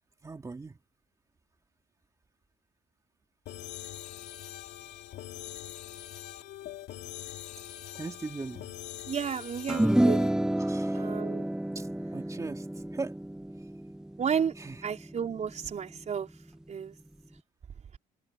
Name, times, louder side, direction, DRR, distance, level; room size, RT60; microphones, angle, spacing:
voice 1, 0.2-0.8 7.9-8.7 10.6-11.2 11.7-13.2 13.6-13.7 14.5-14.8, right 3 dB, 20° right, 3.0 m, -40 dB
sound 1, 3.5-10.3, left 13 dB, 75° left, 3.4 m, -43 dB
voice 2, 9.1-10.2 10.9-11.5 14.2-14.5 14.8-16.3 16.7-16.9, right 7 dB, 45° right, 5.0 m, -32 dB
sound 2, 9.7-16.2, right 1 dB, 5° right, 0.6 m, -30 dB
cardioid pair, 110°, 17 cm